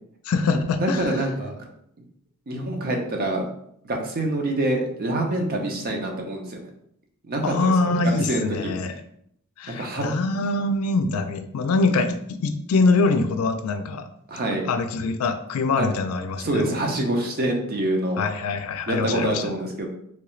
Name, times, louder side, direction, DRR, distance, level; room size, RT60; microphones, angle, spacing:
voice 1, 0.2-1.1 7.4-8.9 9.6-14.1 14.7-16.7 18.2-19.4, left 3 dB, 80° left, 9 dB, 0.4 m, -24 dB
voice 2, 0.8-1.7 2.5-3.5 3.8-6.7 7.2-7.7 8.3-8.7 9.7-10.1 14.3-14.6 15.8-15.9 16.4-18.2 18.9-19.9, right 1 dB, 45° right, 2 dB, 0.6 m, -26 dB
3.2 x 2.4 x 3.1 m, 0.71 s
head